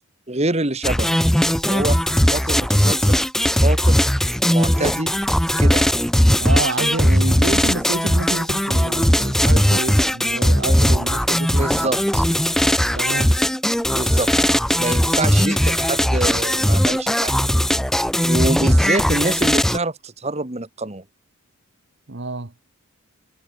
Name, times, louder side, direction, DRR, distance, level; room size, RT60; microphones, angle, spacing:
voice 1, 0.3-1.2 1.6-2.0 2.3-3.2 3.6-4.0 4.5-5.1 5.6-5.9 11.5-12.3 13.9-14.5 14.8-17.3 18.2-21.0, right 2 dB, 30° right, 1.7 m, -25 dB
sound 1, 0.8-19.8, equal, ahead, 0.6 m, -18 dB
voice 2, 6.4-11.9 12.9-13.4 22.1-22.5, right 2 dB, 50° right, 1.3 m, -28 dB
head